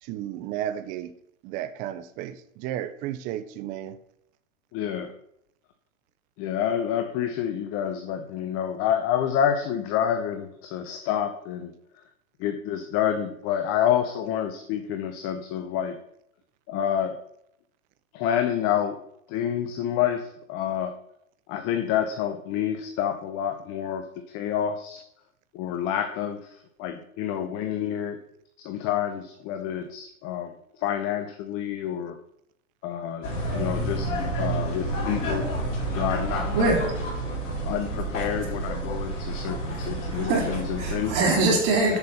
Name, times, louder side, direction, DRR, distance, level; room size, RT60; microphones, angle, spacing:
voice 1, 0.0-1.1 1.4-4.0, right 11 dB, 20° right, 0.4 m, -33 dB
voice 2, 4.7-5.1 6.4-11.7 12.4-16.0 16.7-17.1 18.1-19.0 19.3-20.9 21.5-24.1 24.3-25.0 25.5-28.2 28.6-30.5 30.8-32.2 32.8-33.3 33.5-34.1 34.4-35.4 35.9-36.5 37.6-41.1 41.9-42.0, left 9 dB, 35° left, 0.8 m, -28 dB
sound 1, 33.2-41.1, right 1 dB, 65° left, 3.0 m, -29 dB
voice 3, 36.5-36.8 38.4-38.5 39.8-42.0, right 2 dB, 40° right, 3.4 m, -24 dB
6.9 x 6.3 x 5.7 m
hypercardioid pair, 125°, 41 cm